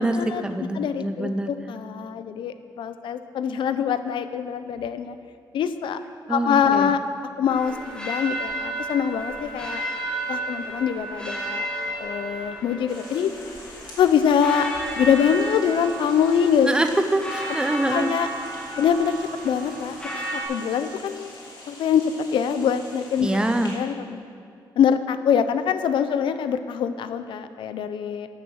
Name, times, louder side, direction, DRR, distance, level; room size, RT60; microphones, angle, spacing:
voice 1, 0.0-1.5 6.3-6.9 16.7-18.1 23.2-23.8, right 1 dB, 10° right, 6 dB, 0.5 m, -24 dB
voice 2, 0.7-5.2 5.5-6.0 6.3-7.0 7.4-9.8 10.3-11.7 12.0-13.3 14.0-14.7 15.0-16.7 17.9-18.3 18.8-19.1 19.4-19.9 20.3-21.3 21.7-23.4 23.7-24.2 24.8-28.3, left 8 dB, 80° left, 11 dB, 0.6 m, -24 dB
sound 1, 7.5-20.4, right 1 dB, 10° left, 2.6 m, -33 dB
sound 2, 12.9-23.7, left 2 dB, 55° left, 3.1 m, -44 dB
13.5 x 6.6 x 6.3 m, 2.3 s
wide cardioid pair, 175°, 8 cm